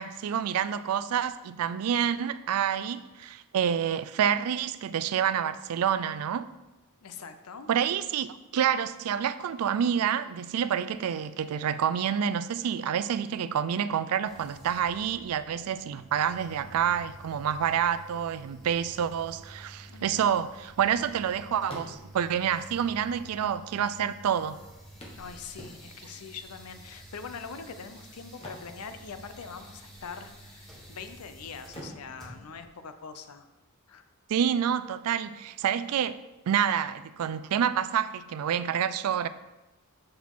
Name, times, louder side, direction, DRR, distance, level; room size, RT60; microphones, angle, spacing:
voice 1, 0.0-6.5 7.7-24.6 34.3-36.2 36.5-39.3, right 8 dB, 80° right, 0.4 m, -28 dB
voice 2, 7.0-7.7 19.9-20.3 25.2-33.5 33.9-34.0, left 5 dB, 85° left, 0.6 m, -43 dB
sound 1, 14.2-32.7, right 1 dB, ahead, 1.9 m, -50 dB
sound 2, 21.7-22.4 23.3-23.4 23.7-23.8 25.0-26.2 28.2-29.6 29.8-30.1 30.6-31.2 31.7-33.4 35.4-35.5 35.9-36.0, equal, 25° left, 1.2 m, -48 dB
7.5 x 4.8 x 3.6 m
head